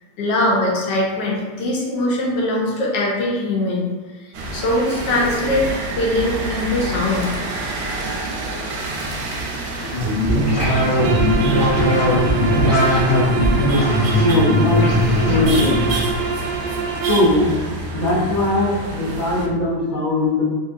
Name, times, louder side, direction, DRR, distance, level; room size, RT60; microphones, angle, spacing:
voice 1, 0.2-3.9 4.2-7.4, left 1 dB, 90° left, -2 dB, 1.4 m, -21 dB
sound 1, 4.3-19.5, right 2 dB, 70° right, 0.9 m, -28 dB
sound 2, 9.8-16.2, left 1 dB, 15° left, 0.9 m, -18 dB
sound 3, 11.0-17.3, right 4 dB, 90° right, 1.2 m, -25 dB
voice 2, 14.2-14.9 15.2-15.8 17.1-17.5 17.9-20.4, left 2 dB, 50° left, -5 dB, 0.5 m, -19 dB
3.2 x 2.7 x 2.4 m, 1.4 s
omnidirectional pair, 1.8 m